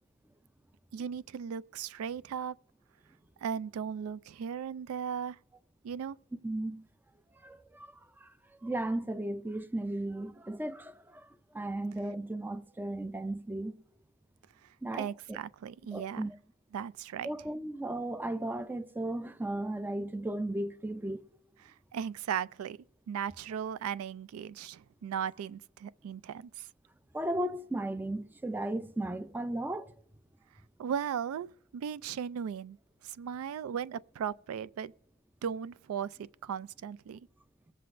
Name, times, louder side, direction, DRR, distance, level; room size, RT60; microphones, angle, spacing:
voice 1, 0.9-2.6 3.4-5.4 5.8-6.2 14.9-16.2 16.7-17.3 21.6-22.8 23.1-26.7 30.8-32.8 33.0-34.9 35.4-37.3, right 8 dB, 90° right, 0.3 m, -37 dB
voice 2, 6.4-6.8 7.4-8.3 8.6-11.3 11.5-13.8 14.8-15.1 15.9-16.4 17.2-21.2 27.1-29.9, right 1 dB, 10° right, 0.4 m, -35 dB
22.0 x 7.6 x 2.6 m
head